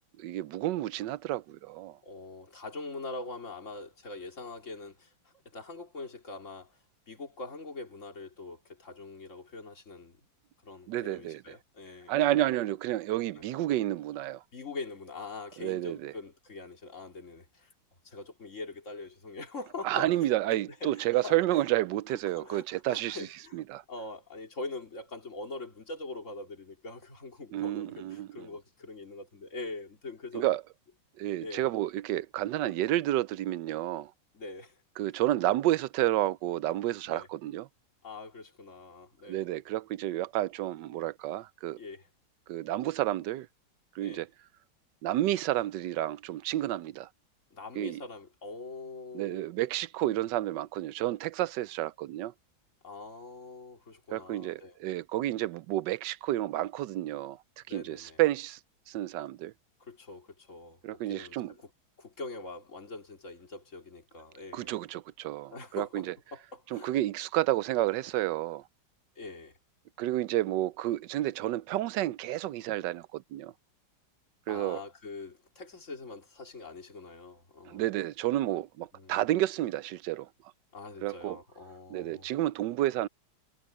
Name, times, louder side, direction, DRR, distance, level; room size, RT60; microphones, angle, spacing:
voice 1, 0.2-2.0 10.9-11.4 12.1-14.4 15.6-16.1 19.8-23.3 23.5-23.8 27.5-28.3 30.3-30.6 31.2-34.1 35.0-37.6 39.3-41.8 42.5-43.5 43.9-44.3 45.0-47.1 47.8-48.0 49.1-52.3 54.1-57.4 57.7-58.6 58.9-59.5 60.8-61.5 64.5-66.0 66.7-68.6 70.0-73.5 74.5-74.8 77.7-80.3 81.0-81.4 81.9-83.1, right 14 dB, 75° right, 1.1 m, -30 dB
voice 2, 2.0-6.8 7.1-10.2 10.6-12.5 13.4-13.5 14.5-17.7 18.0-21.7 22.1-23.6 23.9-30.5 31.4-31.7 34.3-34.8 37.1-37.3 38.0-39.4 41.8-42.1 44.0-44.2 47.5-49.5 52.8-54.8 57.7-58.2 59.8-61.7 62.0-64.7 65.5-67.0 69.2-69.6 74.5-77.8 78.9-79.2 80.7-82.3, left 3 dB, 35° left, 3.7 m, -43 dB
omnidirectional pair, 2.3 m